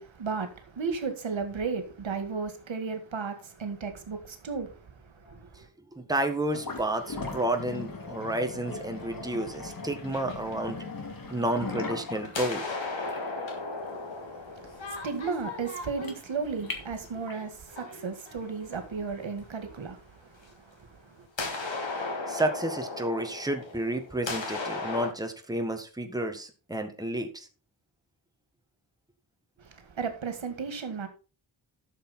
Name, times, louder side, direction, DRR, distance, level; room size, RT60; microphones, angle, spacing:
voice 1, 0.0-5.7 14.1-21.3 29.6-31.1, right 5 dB, 85° right, 2.0 m, -35 dB
voice 2, 6.0-10.9 11.3-12.6 22.3-27.5, right 1 dB, 10° right, 1.5 m, -31 dB
sound 1, 6.5-17.5, left 3 dB, 50° left, 2.4 m, -40 dB
sound 2, 9.5-11.3 11.7-19.0 20.4-20.5 21.4-25.1, left 3 dB, 80° left, 3.5 m, -36 dB
12.5 x 6.7 x 4.3 m
wide cardioid pair, 125°, 45 cm